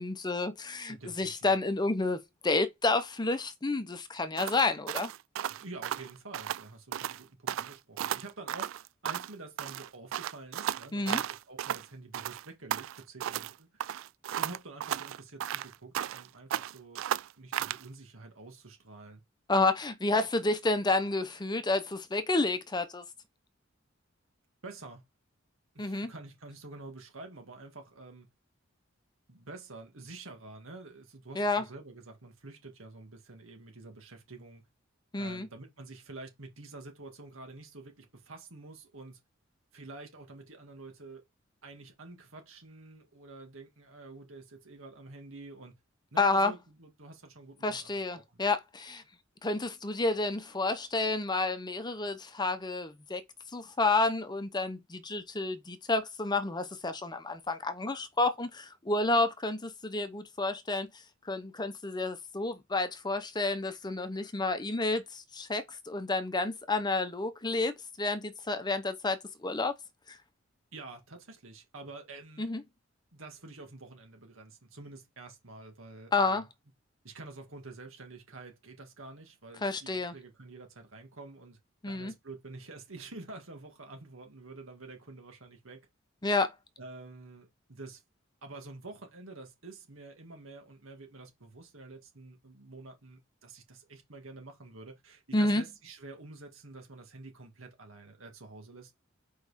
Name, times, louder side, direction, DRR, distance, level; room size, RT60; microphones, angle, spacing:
voice 1, 0.0-5.1 10.9-11.2 19.5-23.0 25.8-26.1 31.3-31.6 35.1-35.5 46.2-46.5 47.6-49.0 49.4-53.2 53.5-60.9 61.3-69.7 70.1-70.2 72.4-72.6 76.1-76.4 79.6-80.1 81.8-82.1 86.2-86.5 95.3-95.6, left 3 dB, 20° left, 0.7 m, -30 dB
voice 2, 0.9-1.5 5.5-8.7 9.0-13.8 14.4-17.1 17.4-19.2 20.1-20.3 24.6-25.0 25.7-28.3 29.3-34.6 35.2-39.2 39.7-41.2 41.6-45.7 46.1-48.4 70.7-72.5 73.1-76.5 77.0-81.6 81.9-85.9 86.8-88.0 88.4-98.9, right 3 dB, 85° right, 2.0 m, -48 dB
sound 1, 4.4-6.6 6.9-7.2 7.5-9.3 9.6-11.9 12.1-13.5 13.8-16.3 16.5-17.8, right 11 dB, 70° right, 0.3 m, -34 dB
5.2 x 4.7 x 4.1 m
head